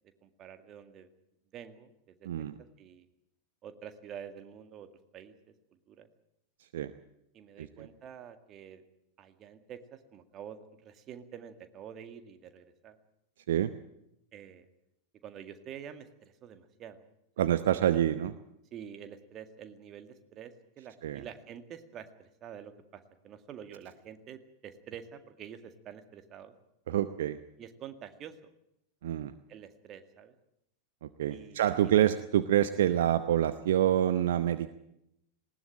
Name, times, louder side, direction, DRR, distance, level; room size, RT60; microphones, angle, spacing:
voice 1, 0.2-1.1 1.5-2.5 2.8-3.1 3.6-4.9 5.1-5.3 5.9-6.1 7.3-8.8 9.2-13.0 14.3-14.7 15.2-17.0 17.4-17.9 18.7-26.5 27.6-28.5 29.5-30.3 31.3-31.7 32.0-32.1, right 8 dB, 30° right, 9 dB, 2.0 m, -48 dB
voice 2, 17.4-18.3 21.0-21.2 26.9-27.4 29.0-29.3 31.0-34.7, right 11 dB, 60° right, 12 dB, 0.8 m, -27 dB
19.5 x 18.5 x 8.8 m, 0.80 s
figure-of-eight pair, 90°, 0 cm